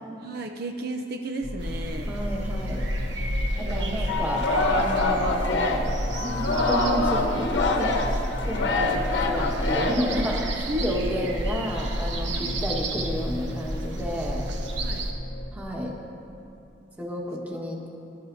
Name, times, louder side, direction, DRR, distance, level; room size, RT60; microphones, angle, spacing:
voice 1, 0.2-2.2 3.5-4.0 10.7-11.2 12.3-12.6 14.8-15.0, right 1 dB, 60° right, 4 dB, 0.6 m, -34 dB
sound 1, 1.4-15.5, left 1 dB, 55° left, 0.7 m, -36 dB
sound 2, 1.6-15.1, equal, 80° right, 1.1 m, -31 dB
voice 2, 2.1-2.9 3.6-5.9 6.2-7.5 7.8-7.9 8.4-14.5 15.5-16.0 17.0-17.9, equal, 10° right, -2 dB, 1.5 m, -31 dB
Singing, 4.1-10.5, left 2 dB, 80° left, 1.1 m, -25 dB
20.0 x 11.0 x 2.8 m, 2.7 s
head